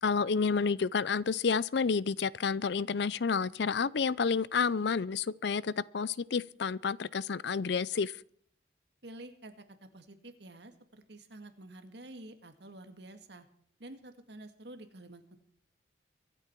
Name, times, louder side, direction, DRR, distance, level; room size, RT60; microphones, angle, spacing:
voice 1, 0.0-8.1, left 5 dB, 65° left, 0.5 m, -30 dB
voice 2, 9.0-9.5 9.8-13.5 13.8-15.4, right 1 dB, 65° right, 1.9 m, -49 dB
24.0 x 8.5 x 4.6 m
head